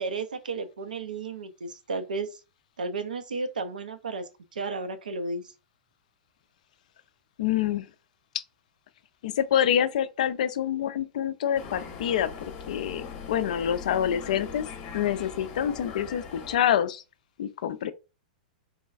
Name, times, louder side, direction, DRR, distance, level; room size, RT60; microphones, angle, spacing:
voice 1, 0.0-2.3 2.8-4.2 4.5-5.4, right 3 dB, 80° right, 0.5 m, -33 dB
voice 2, 7.4-7.9 8.3-8.4 9.2-14.7 14.9-17.0 17.4-17.9, left 10 dB, 60° left, 0.3 m, -27 dB
sound 1, 11.5-16.6, left 6 dB, 40° left, 0.7 m, -40 dB
3.2 x 2.2 x 2.4 m
figure-of-eight pair, 105°, 4 cm